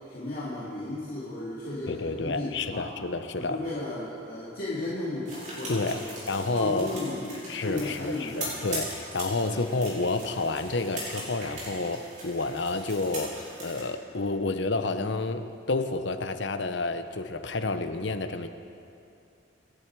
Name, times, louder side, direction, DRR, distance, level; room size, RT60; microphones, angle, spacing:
voice 1, 0.1-2.9 3.3-6.1 6.5-8.5 9.4-9.6, left 2 dB, 50° left, -8 dB, 2.6 m, -34 dB
voice 2, 1.9-3.6 5.7-6.0 6.3-6.9 7.5-18.5, left 3 dB, 65° left, 9 dB, 0.8 m, -30 dB
sound 1, 5.2-13.8, right 1 dB, 40° right, 4.9 m, -40 dB
26.0 x 11.0 x 4.7 m, 2.7 s
head